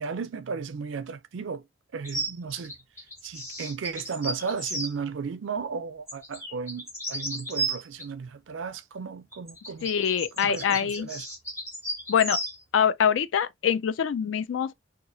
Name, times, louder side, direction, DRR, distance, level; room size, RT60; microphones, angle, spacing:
voice 1, 0.0-1.6 1.9-2.7 3.2-9.9 10.4-11.3, right 5 dB, 85° right, 0.5 m, -34 dB
sound 1, 2.0-4.9 6.1-8.1 9.3-12.6, right 1 dB, 15° left, 1.3 m, -34 dB
voice 2, 9.8-11.1 12.1-12.4 12.7-14.7, left 8 dB, 85° left, 0.4 m, -24 dB
2.9 x 2.4 x 2.6 m
head